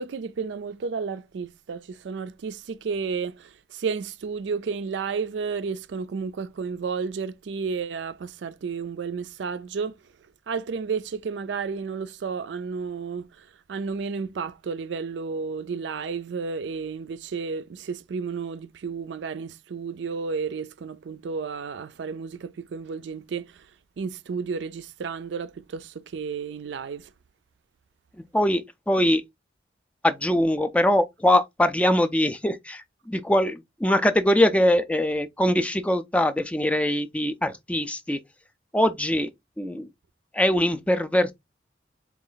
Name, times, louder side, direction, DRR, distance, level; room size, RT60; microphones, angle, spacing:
voice 1, 0.0-10.0 10.5-27.1, right 5 dB, 70° right, 0.4 m, -32 dB
voice 2, 28.3-29.2 30.0-38.2 38.7-39.3 39.6-39.9 40.3-41.3, left 1 dB, 5° left, 0.3 m, -22 dB
4.1 x 2.4 x 3.8 m
head